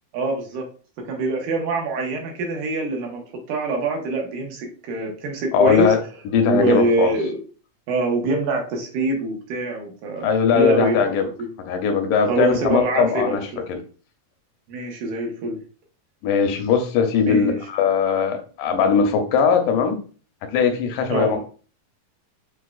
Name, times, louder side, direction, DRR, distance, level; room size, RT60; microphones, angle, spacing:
voice 1, 0.1-0.7 1.0-5.9 6.5-7.4 7.9-10.3 10.5-11.1 11.4-11.5 12.3-13.6 14.7-15.6 17.3-17.6 21.1-21.4, right 2 dB, 75° right, 1 dB, 2.5 m, -24 dB
voice 2, 5.5-6.0 6.3-7.1 10.2-11.3 11.7-13.4 13.7-13.8 16.2-20.0 20.5-21.4, left 6 dB, 85° left, 6 dB, 2.3 m, -20 dB
7.0 x 2.5 x 2.3 m, 0.39 s
omnidirectional pair, 3.7 m